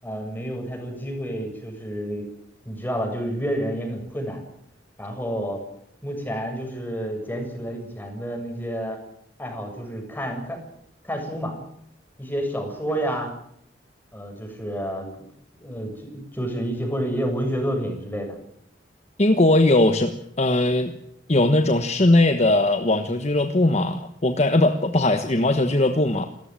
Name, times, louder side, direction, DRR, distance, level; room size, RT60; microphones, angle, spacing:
voice 1, 0.0-2.2 2.7-4.4 5.0-5.6 6.0-9.0 9.4-10.6 11.0-11.5 12.2-13.3 14.1-15.3 15.6-18.3, equal, 10° left, 3 dB, 7.1 m, -29 dB
voice 2, 19.2-20.9 21.3-26.3, left 2 dB, 35° left, 8 dB, 1.3 m, -19 dB
28.5 x 14.5 x 9.0 m, 0.74 s
head